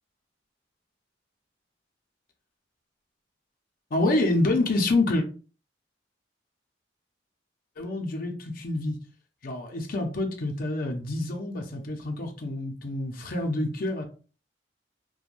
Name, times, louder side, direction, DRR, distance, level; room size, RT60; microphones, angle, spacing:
voice 1, 3.9-5.3 7.8-9.0 9.4-14.0, left 2 dB, 50° left, 0.5 m, -27 dB
3.0 x 2.1 x 2.5 m
head